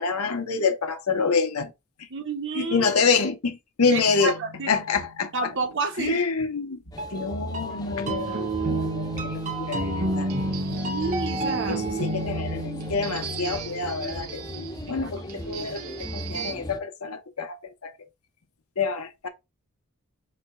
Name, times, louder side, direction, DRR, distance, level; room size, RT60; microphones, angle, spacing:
voice 1, 0.0-1.7 2.5-4.4 4.7-5.3 6.0-6.8 7.1-10.3 10.7-10.9 11.7-17.9 18.8-19.3, left 5 dB, 80° left, 0.9 m, -27 dB
voice 2, 2.1-2.9 3.9-4.7 5.3-6.2 10.7-11.8 14.9-15.1, right 3 dB, 55° right, 0.9 m, -30 dB
sound 1, 4.0-5.1 7.0-14.6, right 2 dB, 35° right, 0.7 m, -31 dB
sound 2, 6.9-16.8, left 1 dB, 15° left, 0.4 m, -37 dB
sound 3, 8.3-16.5, right 8 dB, 75° right, 0.6 m, -40 dB
4.2 x 2.3 x 4.1 m
head